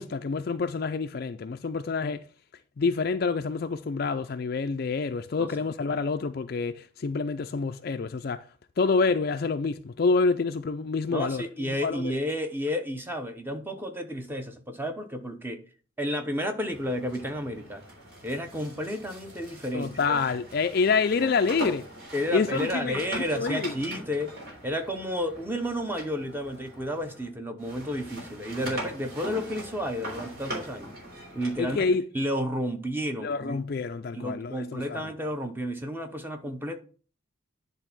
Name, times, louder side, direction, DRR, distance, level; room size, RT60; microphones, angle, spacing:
voice 1, 0.0-2.2 2.8-8.4 8.8-12.1 19.7-21.8 22.3-23.7 31.6-32.0 33.2-35.0, left 4 dB, 50° left, 0.4 m, -27 dB
voice 2, 11.1-15.6 16.0-17.8 18.2-20.2 22.1-24.4 24.6-30.9 31.3-31.9 32.1-33.6 34.1-36.8, equal, 10° right, 0.8 m, -31 dB
sound 1, 16.7-27.3 27.6-31.9, right 1 dB, 50° right, 3.3 m, -41 dB
10.5 x 3.4 x 5.9 m
head